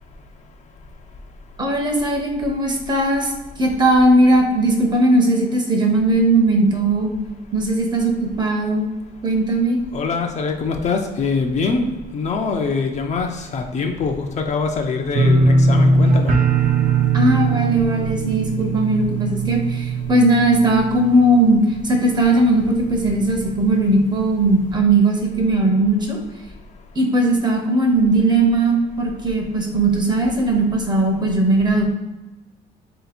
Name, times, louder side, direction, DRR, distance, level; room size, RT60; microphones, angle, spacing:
voice 1, 1.6-3.3 3.6-7.1 7.5-8.9 9.2-9.8 17.1-26.2 27.0-31.8, right 2 dB, 25° right, 2 dB, 0.8 m, -18 dB
voice 2, 9.9-16.3, left 4 dB, 45° left, 3 dB, 0.6 m, -23 dB
sound 1, 15.1-22.0 22.3-22.9 23.2-23.3, right 3 dB, 50° right, 0.6 m, -19 dB
3.1 x 2.8 x 4.2 m, 1.1 s
cardioid pair, 110°, 17 cm